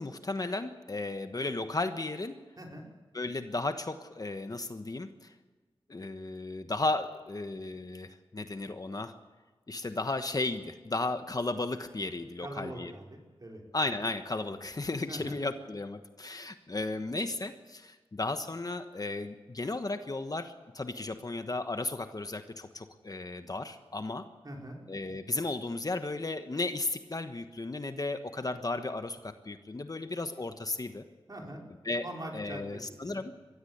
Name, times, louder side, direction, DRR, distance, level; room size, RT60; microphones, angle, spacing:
voice 1, 0.0-2.3 3.1-5.3 5.9-9.1 9.7-12.9 13.7-24.3 24.9-31.0 31.8-32.1 32.3-33.3, left 2 dB, 40° left, 8 dB, 1.3 m, -34 dB
voice 2, 12.4-13.6 15.1-15.4 24.4-24.8 31.3-31.6 32.0-33.3, right 1 dB, 40° right, 0 dB, 5.1 m, -43 dB
22.5 x 15.5 x 8.0 m, 1.3 s
wide cardioid pair, 80°, 10 cm